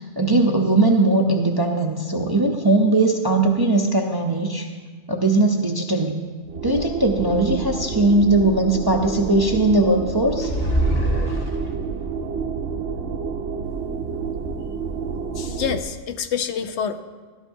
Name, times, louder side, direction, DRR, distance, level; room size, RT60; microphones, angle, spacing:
voice 1, 0.0-4.7 5.1-6.2 6.6-10.5, right 2 dB, 30° right, 1 dB, 0.5 m, -19 dB
sound 1, 6.4-15.8, right 5 dB, 80° right, 1.0 m, -29 dB
sound 2, 10.4-12.0, right 1 dB, 40° left, 1.0 m, -23 dB
voice 2, 15.4-17.0, left 8 dB, 75° left, 8 dB, 0.9 m, -27 dB
13.5 x 12.5 x 2.6 m, 1.5 s
omnidirectional pair, 1.2 m